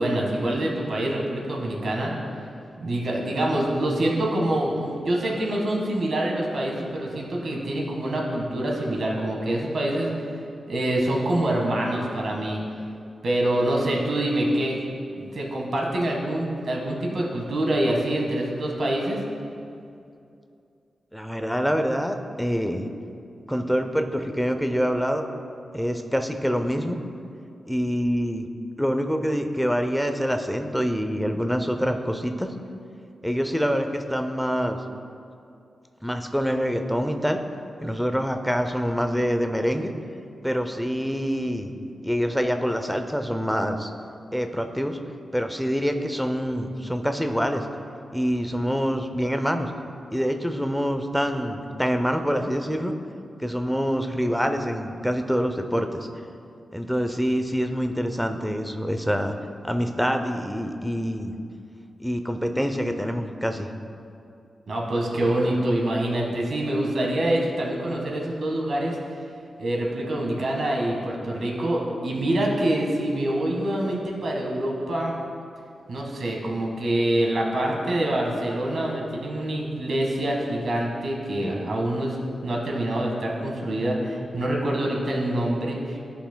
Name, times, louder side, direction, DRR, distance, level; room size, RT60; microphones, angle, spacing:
voice 1, 0.0-2.1 2.8-10.1 10.7-12.6 13.2-14.8 15.1-19.2 64.7-69.0 69.6-75.2 75.9-82.2 82.4-86.0, right 1 dB, 65° right, -2 dB, 1.4 m, -25 dB
voice 2, 21.1-22.9 23.5-25.2 25.7-27.0 27.7-28.5 28.8-32.5 33.2-34.8 36.0-37.4 37.8-39.9 40.4-41.7 42.0-43.9 44.3-45.0 45.3-47.7 48.1-49.7 50.1-52.9 53.4-56.0 56.7-59.3 59.6-61.3 62.0-63.7, equal, ahead, 6 dB, 0.5 m, -25 dB
14.0 x 5.7 x 2.2 m, 2.5 s
wide cardioid pair, 120°, 0 cm